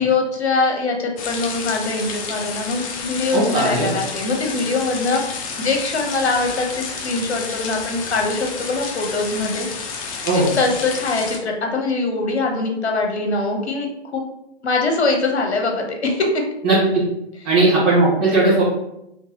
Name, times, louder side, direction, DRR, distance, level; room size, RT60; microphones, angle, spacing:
voice 1, 0.0-9.7 10.6-13.9 14.1-14.2 14.6-16.4, left 3 dB, 70° left, 3 dB, 0.9 m, -22 dB
sound 1, 1.2-11.4, left 5 dB, 35° left, 0.5 m, -30 dB
voice 2, 3.3-3.9 10.2-10.5 16.6-16.8 17.4-18.6, right 2 dB, 30° right, -9 dB, 1.4 m, -17 dB
3.8 x 3.1 x 2.8 m, 0.84 s
figure-of-eight pair, 115°, 33 cm